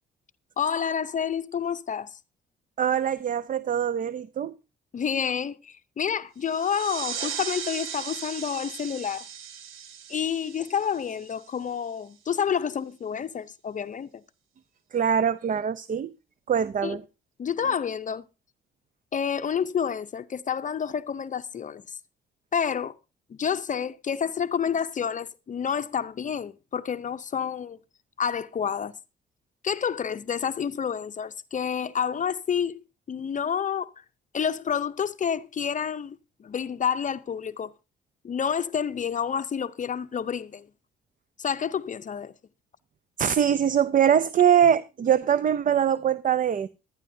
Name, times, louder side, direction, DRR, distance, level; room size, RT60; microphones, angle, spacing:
voice 1, 0.6-2.2 4.9-9.2 10.1-14.1 16.8-17.0 17.4-18.2 19.1-21.8 22.5-22.9 23.3-27.8 28.2-28.9 29.6-32.8 33.1-33.9 34.3-37.7 38.2-40.7 41.4-42.3, left 7 dB, 40° left, 0.6 m, -29 dB
voice 2, 2.8-4.5 14.9-16.1 16.5-17.0 43.2-46.7, right 8 dB, 40° right, 0.5 m, -23 dB
sound 1, 6.4-11.7, right 8 dB, 85° right, 1.5 m, -37 dB
16.5 x 12.0 x 2.7 m
cardioid pair, 90°, 20 cm